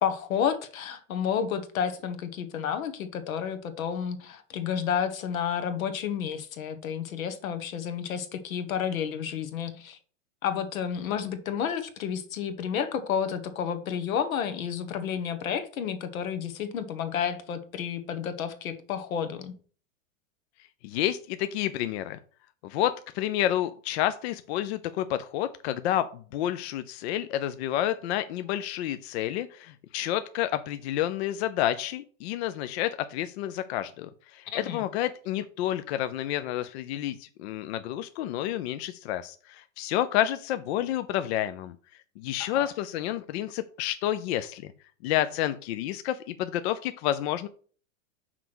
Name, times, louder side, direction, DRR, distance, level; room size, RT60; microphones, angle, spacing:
voice 1, 0.0-10.0 10.4-19.5 34.5-34.8 42.4-42.7, left 8 dB, 85° left, 9 dB, 1.4 m, -31 dB
voice 2, 20.8-22.2 22.6-41.7 42.2-44.7 45.0-47.5, left 12 dB, 55° left, 11 dB, 0.6 m, -29 dB
5.9 x 4.6 x 6.1 m, 0.42 s
supercardioid pair, 145°, 40 cm